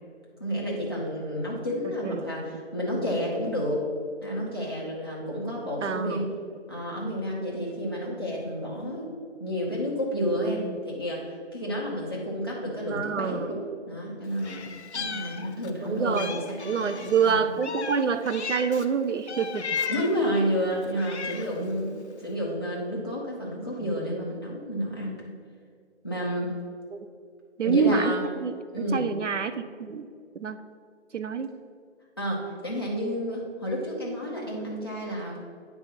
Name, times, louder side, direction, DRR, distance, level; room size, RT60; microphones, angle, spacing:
voice 1, 0.4-3.8 4.2-6.2 6.7-9.1 9.4-13.5 13.9-14.6 14.9-17.4 19.9-25.2 26.0-26.5 27.6-28.2 28.7-29.1 32.2-35.4, equal, 20° left, -6 dB, 0.9 m, -30 dB
voice 2, 5.8-6.3 10.5-10.8 12.9-13.5 15.8-16.3 16.6-19.8 23.9-24.1 26.9-27.0 27.6-28.5 28.9-30.1 30.3-30.6 31.1-31.5, right 6 dB, 85° right, 10 dB, 0.6 m, -27 dB
Meow, 14.4-15.8 16.1-18.9 19.3-20.3 20.8-21.6, left 6 dB, 70° left, 0.6 m, -35 dB
9.5 x 3.4 x 5.7 m, 2.2 s
figure-of-eight pair, 175°, 36 cm